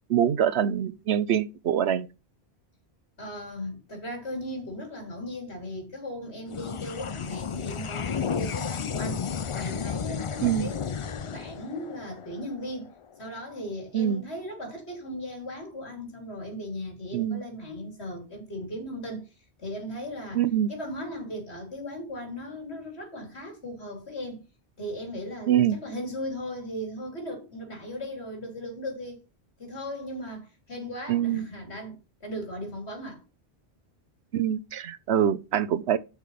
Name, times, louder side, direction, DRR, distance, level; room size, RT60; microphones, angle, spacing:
voice 1, 0.1-2.1 10.4-10.7 13.9-14.2 17.1-17.4 20.3-20.7 25.5-25.8 31.1-31.5 34.3-36.0, right 10 dB, 80° right, 1.0 m, -24 dB
voice 2, 3.2-12.9 13.2-19.3 19.6-24.4 24.8-29.2 29.6-33.2, left 1 dB, 75° left, 4.0 m, -37 dB
sound 1, 6.5-13.2, left 7 dB, 45° left, 0.4 m, -33 dB
8.3 x 6.2 x 5.7 m
omnidirectional pair, 1.1 m